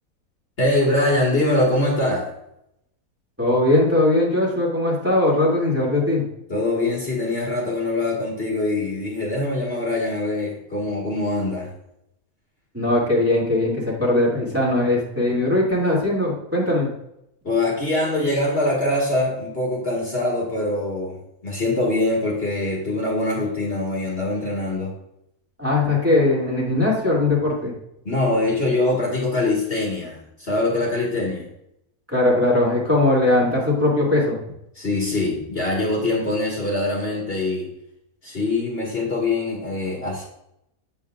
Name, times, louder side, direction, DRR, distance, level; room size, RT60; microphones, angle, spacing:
voice 1, 0.6-2.3 6.5-11.7 17.4-24.9 28.1-31.5 34.8-37.7 38.2-40.2, left 2 dB, 40° left, -3 dB, 1.8 m, -23 dB
voice 2, 3.4-6.2 12.7-16.9 25.6-27.7 32.1-34.4, left 2 dB, 10° right, -5 dB, 2.4 m, -20 dB
8.3 x 8.0 x 2.4 m, 0.79 s
omnidirectional pair, 1.5 m